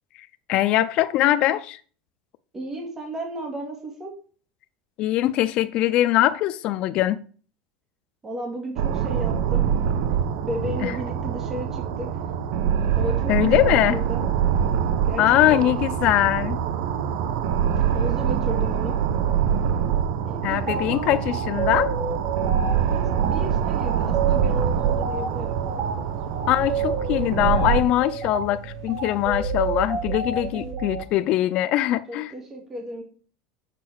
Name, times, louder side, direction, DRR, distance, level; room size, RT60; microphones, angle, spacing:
voice 1, 0.5-1.8 5.0-7.2 10.8-10.9 13.3-14.0 15.2-16.6 20.4-21.9 26.5-32.3, left 14 dB, 50° left, 0.5 m, -22 dB
voice 2, 2.5-4.1 8.2-9.6 10.4-12.1 13.0-14.3 15.0-15.7 17.9-19.0 20.2-21.1 22.9-25.6 30.5-30.8 32.1-33.0, right 1 dB, 15° right, 2.2 m, -34 dB
sound 1, 8.8-27.8, right 8 dB, 70° right, 0.8 m, -24 dB
sound 2, 20.7-20.9 21.3-31.0, right 5 dB, 35° right, 1.7 m, -29 dB
sound 3, 23.2-30.7, right 4 dB, 90° right, 3.5 m, -42 dB
6.7 x 4.6 x 6.2 m
supercardioid pair, 140°, 2 cm